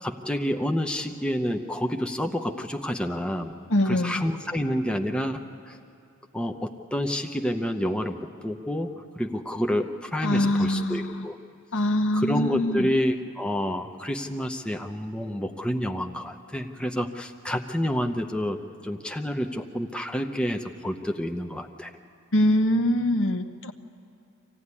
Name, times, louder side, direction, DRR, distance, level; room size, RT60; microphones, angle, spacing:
voice 1, 0.0-3.5 3.8-5.8 6.3-11.4 12.1-21.9, equal, 5° left, 4 dB, 0.7 m, -29 dB
voice 2, 3.7-4.2 10.2-11.3 11.7-12.9 22.3-23.7, left 1 dB, 60° left, 5 dB, 1.0 m, -23 dB
25.0 x 16.0 x 9.7 m, 2.5 s
head